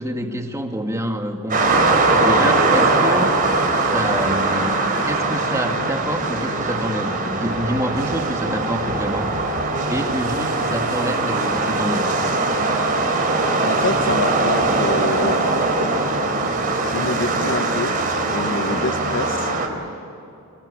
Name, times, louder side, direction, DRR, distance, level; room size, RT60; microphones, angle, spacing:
voice 1, 0.0-3.3 3.8-9.3 9.9-12.1, equal, 15° right, 3 dB, 2.3 m, -27 dB
sound 1, 1.5-19.7, right 2 dB, 40° right, 4.2 m, -21 dB
voice 2, 13.6-15.4 16.7-18.0 18.3-19.5, left 2 dB, 60° left, 8 dB, 1.3 m, -26 dB
24.5 x 23.5 x 8.8 m, 2.8 s
head